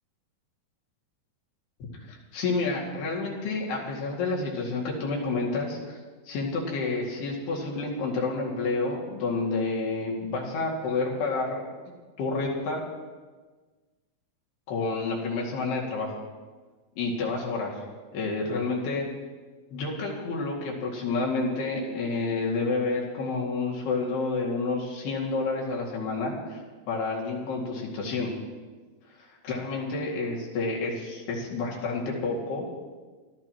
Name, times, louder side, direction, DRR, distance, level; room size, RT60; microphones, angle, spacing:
voice 1, 1.9-6.0 6.3-11.6 12.2-12.8 14.7-16.1 17.0-17.8 18.1-19.0 19.7-26.6 26.9-28.3 29.2-32.6, left 3 dB, 80° left, -3 dB, 4.4 m, -29 dB
24.5 x 15.0 x 3.0 m, 1.4 s
omnidirectional pair, 4.5 m